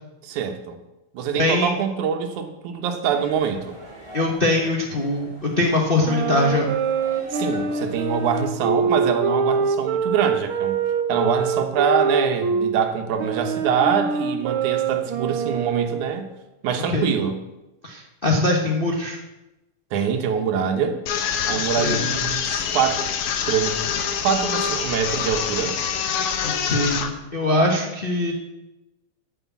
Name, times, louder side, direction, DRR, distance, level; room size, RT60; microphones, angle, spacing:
voice 1, 0.2-0.8 1.1-3.8 7.3-10.8 11.1-16.3 16.6-17.4 19.9-21.0 21.5-23.1 23.5-23.8 24.2-25.8, right 7 dB, 90° right, 6 dB, 2.5 m, -24 dB
voice 2, 1.4-1.7 4.1-6.7 16.9-17.1 17.8-19.2 21.5-22.1 26.4-28.3, left 2 dB, 80° left, -1 dB, 0.5 m, -22 dB
sound 1, 3.0-8.5, right 1 dB, 10° right, 2.9 m, -42 dB
sound 2, 6.0-12.7 13.2-16.2, right 5 dB, 70° right, 1.3 m, -24 dB
sound 3, 21.1-27.1, left 7 dB, 65° left, 1.6 m, -25 dB
9.7 x 6.8 x 8.2 m, 0.99 s
omnidirectional pair, 3.3 m